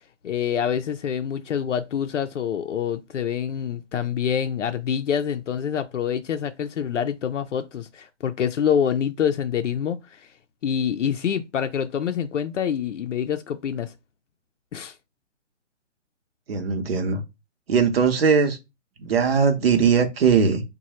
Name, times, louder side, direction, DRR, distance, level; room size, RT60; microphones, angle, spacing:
voice 1, 0.2-10.3 10.6-13.9 14.7-15.0, left 8 dB, 75° left, 0.5 m, -26 dB
voice 2, 16.5-17.2 17.7-18.6 19.0-20.6, right 6 dB, 55° right, 0.8 m, -20 dB
3.0 x 2.2 x 2.9 m
figure-of-eight pair, 140°, 36 cm